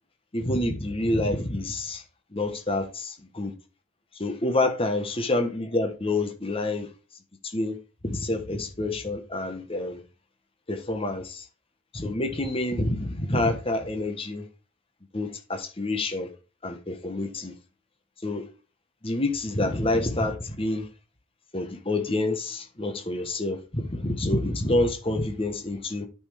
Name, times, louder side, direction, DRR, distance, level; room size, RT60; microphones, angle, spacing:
voice 1, 0.3-2.0 2.3-3.5 4.2-6.9 7.5-7.8 8.0-10.0 10.7-11.4 11.9-14.4 15.1-16.3 16.6-17.5 18.2-18.4 19.0-20.9 21.5-26.1, left 2 dB, 25° left, 1.2 m, -27 dB
9.6 x 5.7 x 3.5 m
head